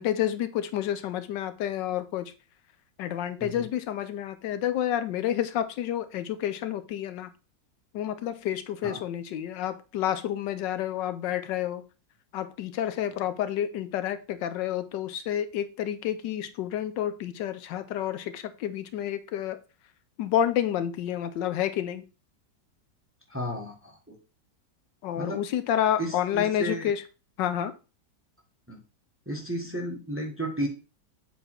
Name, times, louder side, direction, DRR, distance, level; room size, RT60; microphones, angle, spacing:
voice 1, 0.0-2.3 3.0-7.3 7.9-11.8 12.3-19.6 20.2-22.0 25.0-27.0 27.4-27.7, left 10 dB, 85° left, 1.3 m, -29 dB
voice 2, 23.3-24.2 25.2-25.4 26.0-26.9 28.7-28.8 29.3-30.7, equal, 10° right, 1.1 m, -33 dB
7.2 x 3.9 x 4.4 m
omnidirectional pair, 1.9 m